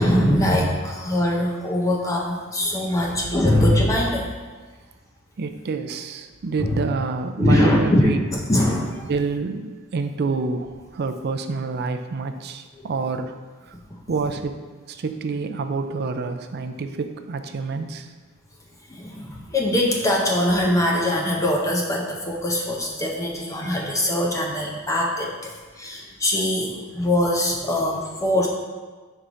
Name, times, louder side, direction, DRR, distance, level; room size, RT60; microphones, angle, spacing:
voice 1, 0.0-4.3 6.6-6.8 7.4-9.1 18.9-25.5 25.8-28.5, left 1 dB, 15° left, -1 dB, 0.5 m, -22 dB
voice 2, 5.4-8.2 9.1-13.3 14.1-14.6 14.9-18.1, right 4 dB, 50° right, 8 dB, 0.4 m, -27 dB
5.5 x 4.6 x 3.8 m, 1.4 s
head